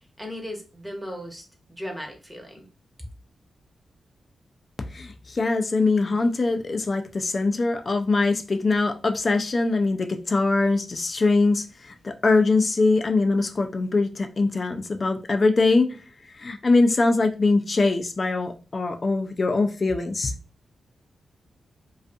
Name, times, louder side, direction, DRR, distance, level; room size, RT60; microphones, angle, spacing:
voice 1, 0.2-1.4 1.7-2.7, equal, 5° right, 0.8 m, -36 dB
voice 2, 4.8-16.0 16.3-20.4, left 3 dB, 40° left, 0.4 m, -22 dB
2.5 x 2.4 x 2.5 m
wide cardioid pair, 100°, 0 cm